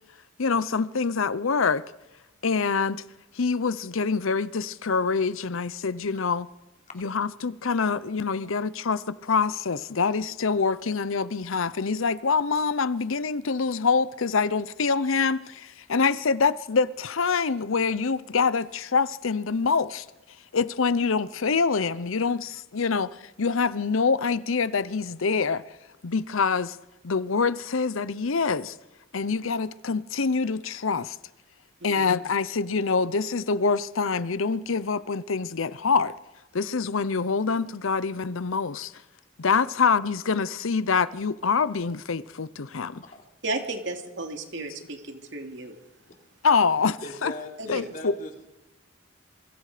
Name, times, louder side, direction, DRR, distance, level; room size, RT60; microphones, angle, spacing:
voice 1, 0.4-1.8 2.4-3.0 3.3-6.5 7.0-20.1 20.5-25.6 26.0-26.8 27.0-28.7 29.1-31.2 31.8-36.1 36.5-38.9 39.4-43.0 44.6-44.7 46.4-47.3 47.7-48.1, left 5 dB, 80° left, 0.7 m, -25 dB
voice 2, 43.4-45.7 47.6-47.9, right 2 dB, 60° right, 2.8 m, -34 dB
voice 3, 46.8-48.4, left 1 dB, 40° left, 3.6 m, -39 dB
27.5 x 23.5 x 5.1 m
head